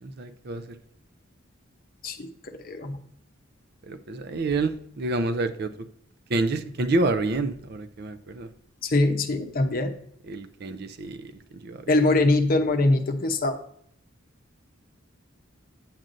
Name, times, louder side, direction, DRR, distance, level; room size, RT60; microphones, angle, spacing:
voice 1, 0.0-0.6 3.9-5.7 6.3-8.5 10.3-11.3 11.6-11.8, right 2 dB, 50° right, 10 dB, 0.5 m, -28 dB
voice 2, 2.0-3.0 8.8-9.9 11.9-13.6, left 2 dB, 45° left, 6 dB, 0.7 m, -23 dB
8.7 x 7.6 x 2.6 m, 0.69 s
head